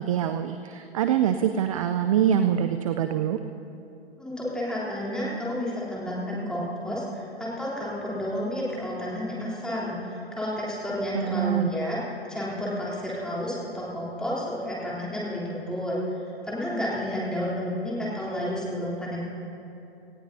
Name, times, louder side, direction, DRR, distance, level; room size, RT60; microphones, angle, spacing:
voice 1, 0.0-3.4 11.1-11.8, right 9 dB, 35° right, 8 dB, 0.4 m, -24 dB
voice 2, 4.2-12.0 12.3-16.2 16.4-19.3, left 1 dB, ahead, -8 dB, 3.3 m, -31 dB
18.5 x 16.5 x 2.7 m, 2.8 s
hypercardioid pair, 135°, 32 cm